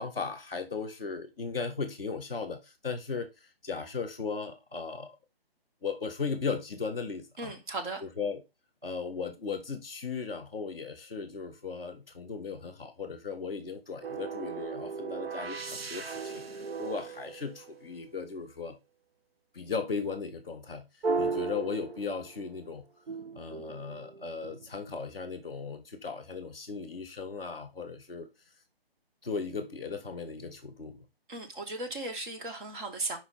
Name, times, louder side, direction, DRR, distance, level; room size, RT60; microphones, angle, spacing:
voice 1, 0.0-3.3 3.6-5.1 5.8-7.5 8.0-8.4 8.8-18.8 19.5-20.9 21.2-22.8 23.3-28.3 29.2-31.1, left 5 dB, 5° right, 0.3 m, -37 dB
voice 2, 7.4-8.0 31.3-33.2, right 2 dB, 55° right, 2.7 m, -36 dB
sound 1, 14.0-18.2 21.0-22.5 23.1-24.8, right 4 dB, 75° right, 1.0 m, -36 dB
6.2 x 5.0 x 3.6 m
figure-of-eight pair, 145°, 30 cm